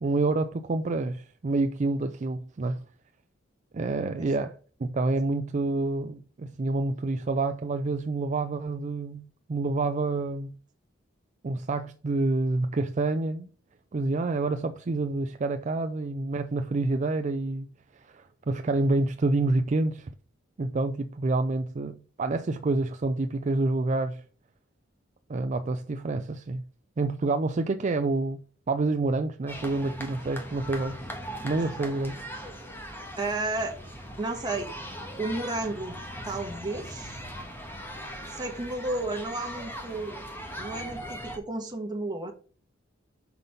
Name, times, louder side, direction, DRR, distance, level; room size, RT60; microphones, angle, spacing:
voice 1, 0.0-2.8 3.7-10.5 11.4-13.5 13.9-17.7 17.9-20.1 20.6-24.2 25.3-26.7 27.0-28.4 28.7-31.1 31.4-32.2, right 3 dB, 40° right, 0.4 m, -28 dB
sound 1, 29.5-41.4, equal, 10° left, 1.4 m, -40 dB
voice 2, 33.2-33.7 34.2-34.7 35.2-35.9 36.2-37.1 38.3-40.2 40.6-42.3, right 2 dB, 20° right, 1.3 m, -32 dB
5.9 x 5.3 x 5.2 m
head